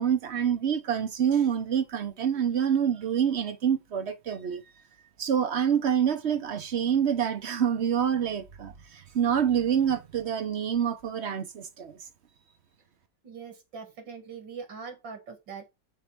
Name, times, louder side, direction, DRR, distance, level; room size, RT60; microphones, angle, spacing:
voice 1, 0.0-4.6 5.2-12.0, right 8 dB, 55° right, 0.8 m, -27 dB
voice 2, 13.2-15.7, right 5 dB, 90° right, 2.6 m, -42 dB
5.7 x 4.6 x 6.0 m
omnidirectional pair, 2.0 m